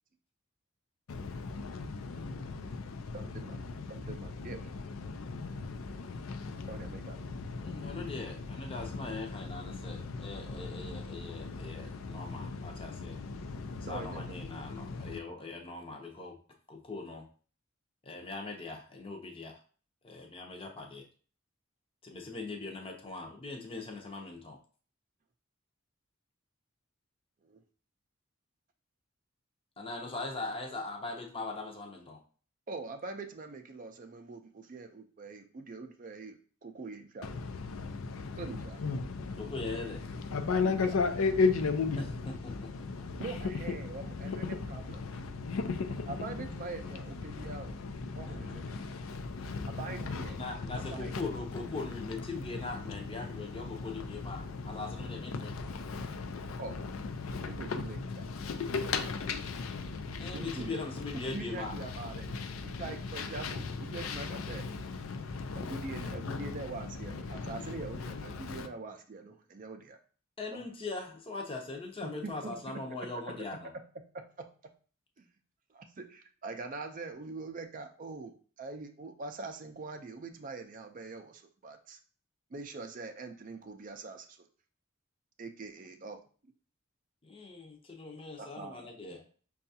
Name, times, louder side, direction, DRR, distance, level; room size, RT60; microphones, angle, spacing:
voice 1, 1.1-15.2 37.2-68.7, left 4 dB, 85° left, 0.4 m, -37 dB
voice 2, 3.1-3.6 3.9-4.6 6.7-7.2 13.9-14.3 27.4-27.6 32.7-37.3 38.4-38.8 40.6-40.9 43.2-45.2 46.1-47.8 48.2-48.8 49.8-50.3 50.7-51.1 56.6-56.7 57.5-58.2 60.3-60.8 61.3-62.3 62.6-64.6 65.5-70.0 70.5-70.6 72.0-72.7 74.1-74.5 75.2-75.3 75.7-82.0 82.5-84.5 85.4-86.5 88.4-88.9, right 3 dB, 40° right, 0.4 m, -43 dB
voice 3, 7.6-13.2 13.9-16.3 16.7-17.2 18.0-19.6 20.0-21.0 22.0-24.6 29.8-32.2 39.4-40.0 42.0-42.1 42.4-42.7 48.3-48.4 49.4-49.6 50.3-55.5 60.2-61.7 70.4-73.7 87.2-89.2, left 3 dB, 25° left, 0.6 m, -41 dB
5.6 x 2.3 x 2.7 m
head